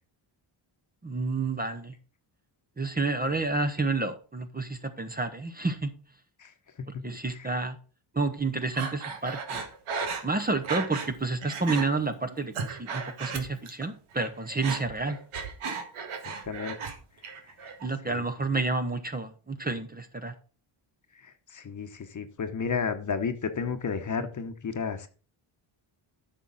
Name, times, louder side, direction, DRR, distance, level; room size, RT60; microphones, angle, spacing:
voice 1, 1.0-1.9 2.8-5.9 7.0-7.8 8.1-9.6 10.2-15.2 17.8-20.3, right 3 dB, 20° right, 7 dB, 0.9 m, -30 dB
Breathing, 8.7-11.1 11.4-11.9 12.3-13.9 14.1-16.9 17.2-17.9, right 5 dB, 85° right, 1.8 m, -35 dB
voice 2, 16.5-16.9 17.6-17.7 18.1-18.2 21.1-25.1, left 5 dB, 35° left, 8 dB, 1.1 m, -33 dB
10.0 x 6.2 x 4.0 m, 0.38 s
cardioid pair, 95°, 49 cm